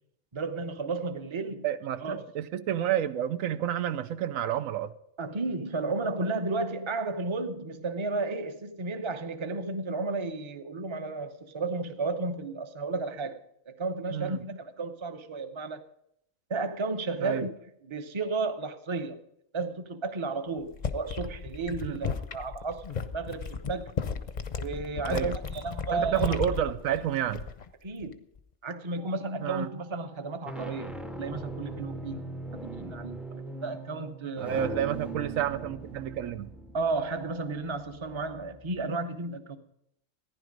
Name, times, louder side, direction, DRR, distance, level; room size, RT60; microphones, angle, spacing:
voice 1, 0.3-1.6 2.0-2.2 5.2-13.4 13.7-15.8 16.5-17.5 17.9-19.2 19.5-23.9 24.6-26.3 27.8-28.2 28.6-30.9 31.2-34.7 36.7-39.6, right 3 dB, 25° right, 0.8 m, -33 dB
voice 2, 1.6-4.9 14.1-14.4 17.2-17.5 21.8-22.0 25.0-25.3 25.9-27.4 29.4-29.7 34.4-36.5, right 10 dB, 85° right, 1.1 m, -30 dB
sound 1, 20.6-27.7 28.0-28.4, left 6 dB, 40° left, 0.7 m, -35 dB
sound 2, 29.0-29.4 30.2-38.8, right 2 dB, ahead, 0.3 m, -40 dB
15.0 x 10.5 x 5.2 m
omnidirectional pair, 1.3 m